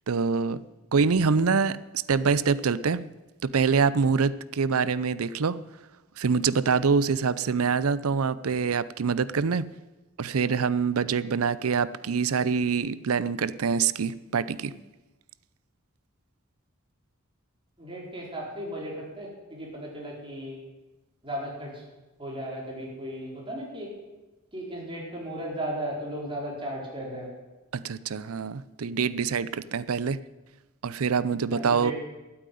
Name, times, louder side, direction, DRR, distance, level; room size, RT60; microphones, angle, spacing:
voice 1, 0.1-0.6 0.9-1.8 2.1-3.0 3.4-5.6 6.2-9.7 10.2-14.7 27.7-30.2 30.8-31.9, right 5 dB, 85° right, 17 dB, 0.6 m, -25 dB
voice 2, 17.8-20.7 21.2-21.8 22.2-23.9 24.5-27.3 31.5-31.9, equal, 25° right, -3 dB, 4.6 m, -36 dB
13.0 x 8.8 x 9.3 m, 1.1 s
head